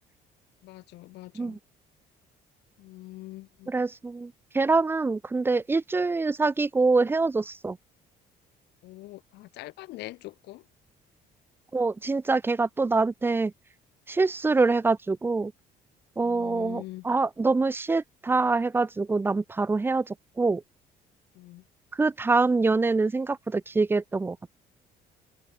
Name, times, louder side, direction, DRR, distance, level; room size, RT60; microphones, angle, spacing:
voice 1, 0.6-1.6 2.8-3.7 8.8-10.7 16.2-17.0 21.3-21.6, left 18 dB, 80° left, 1.0 m, -43 dB
voice 2, 3.7-7.8 11.7-13.5 14.1-15.5 16.2-20.6 21.9-24.4, right 3 dB, 15° right, 0.4 m, -25 dB
cardioid pair, 110°, 17 cm